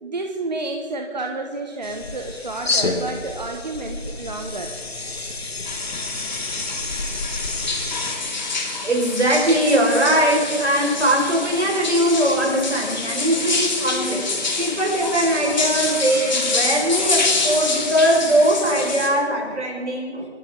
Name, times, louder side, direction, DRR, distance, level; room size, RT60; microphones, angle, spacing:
voice 1, 0.0-4.7, right 2 dB, 35° right, 3 dB, 1.2 m, -30 dB
sound 1, 1.8-8.2, left 3 dB, 60° left, 1.9 m, -29 dB
sound 2, 5.7-19.1, left 3 dB, 40° left, 2.6 m, -26 dB
voice 2, 8.8-20.3, right 1 dB, 70° right, -1 dB, 5.5 m, -20 dB
28.0 x 12.5 x 3.8 m, 2.2 s
figure-of-eight pair, 165°, 35 cm